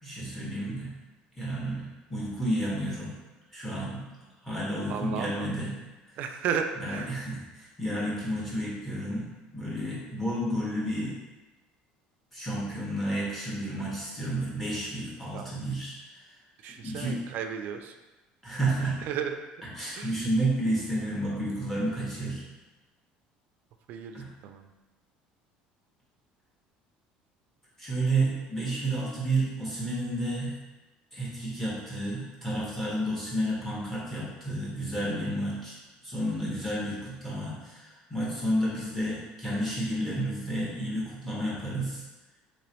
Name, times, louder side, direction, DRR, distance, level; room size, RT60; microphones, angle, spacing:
voice 1, 0.0-0.9 1.4-3.1 3.5-4.1 4.4-5.7 6.1-6.2 6.8-11.1 12.3-16.3 16.6-17.2 18.4-19.0 19.8-22.4 24.1-24.3 27.8-30.6 31.1-42.0, right 1 dB, 10° left, -6 dB, 1.3 m, -31 dB
voice 2, 4.9-5.5 6.2-7.2 15.3-15.6 16.6-18.0 19.0-19.4 19.9-20.1 23.9-24.7, right 7 dB, 60° right, 6 dB, 0.3 m, -34 dB
3.0 x 3.0 x 2.9 m, 1.1 s
supercardioid pair, 105°, 3 cm